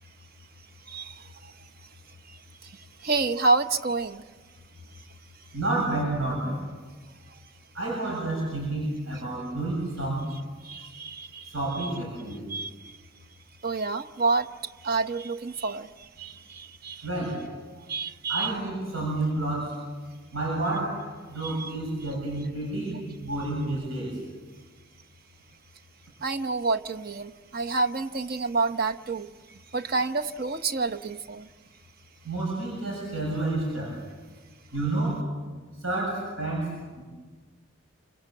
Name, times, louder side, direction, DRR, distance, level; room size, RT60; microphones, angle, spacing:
voice 1, 0.9-1.5 3.0-4.2 10.6-11.5 11.8-11.9 12.5-12.9 13.6-14.5 14.8-15.9 16.2-17.1 17.9-18.5 21.4-21.7 26.2-29.3 29.7-31.5, right 3 dB, 45° right, 9 dB, 0.9 m, -28 dB
voice 2, 5.5-6.6 7.7-10.3 10.8-10.9 11.4-12.5 17.0-17.4 18.3-19.8 20.3-24.2 32.2-34.0 34.7-35.3 35.8-37.0, right 2 dB, 75° right, -2 dB, 7.4 m, -30 dB
28.0 x 26.5 x 7.8 m, 1.4 s
head